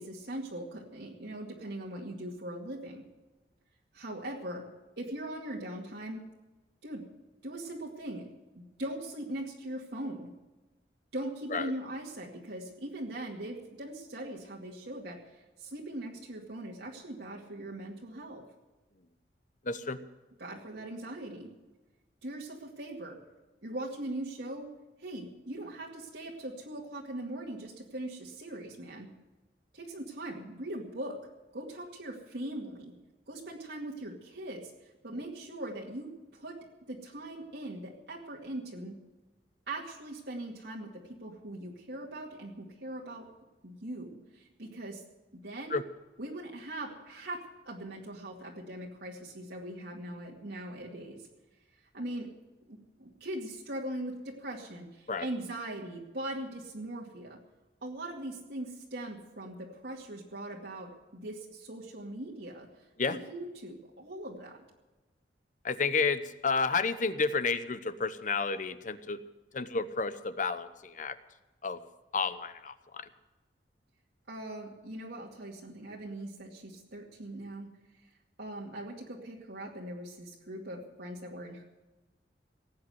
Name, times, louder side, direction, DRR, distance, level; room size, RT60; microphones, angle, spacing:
voice 1, 0.0-3.0 3.9-4.6 5.0-6.2 6.8-7.0 7.4-8.3 8.5-10.3 11.1-18.4 20.4-21.5 22.2-23.2 23.6-24.7 25.0-29.1 29.7-31.2 31.5-32.9 33.3-36.6 36.9-39.0 39.7-40.9 41.2-43.3 43.6-45.0 45.3-45.8 46.2-47.4 47.6-51.2 51.9-52.3 52.7-57.4 57.8-64.6 74.3-77.7 78.4-81.7, right 1 dB, 70° right, -3 dB, 2.2 m, -40 dB
voice 2, 19.6-20.0 45.7-45.8 55.1-55.3 63.0-63.2 65.6-69.2 69.5-71.2 71.6-71.8 72.1-73.1, left 4 dB, 45° left, 12 dB, 0.9 m, -31 dB
18.0 x 8.7 x 7.9 m, 1.1 s
head